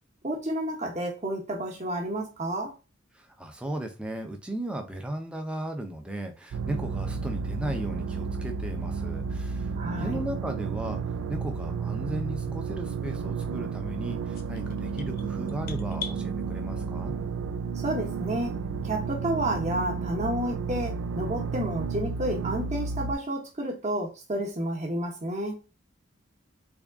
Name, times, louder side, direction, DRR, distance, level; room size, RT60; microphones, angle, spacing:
voice 1, 0.2-2.7 9.8-10.2 17.8-18.5 18.8-25.6, right 1 dB, 35° right, 0.9 m, -30 dB
voice 2, 3.1-11.0 11.3-17.1, right 1 dB, 5° right, 0.5 m, -36 dB
sound 1, 6.5-23.1, right 5 dB, 85° right, 0.3 m, -32 dB
sound 2, 14.3-16.2, left 7 dB, 45° left, 0.5 m, -40 dB
3.5 x 2.3 x 3.4 m
head